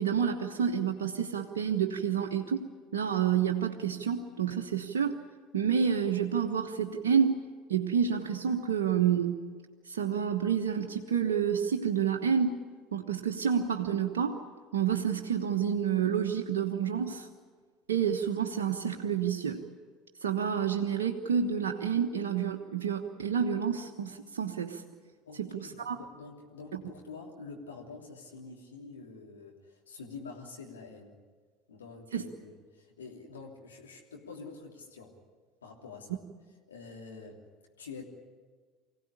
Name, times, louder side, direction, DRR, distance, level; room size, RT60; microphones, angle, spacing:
voice 1, 0.0-2.6 2.9-5.2 5.5-7.4 7.7-9.4 9.9-12.6 12.9-14.4 14.7-17.3 17.9-19.6 20.2-24.8 25.4-26.0 26.7-26.8 32.1-32.2, right 7 dB, 75° right, 1 dB, 1.2 m, -29 dB
voice 2, 25.3-31.1 31.7-35.1 35.6-36.2 36.7-37.4 37.8-38.0, left 4 dB, 85° left, 0 dB, 3.2 m, -47 dB
24.0 x 17.0 x 10.0 m, 1.5 s
figure-of-eight pair, 70°, 0 cm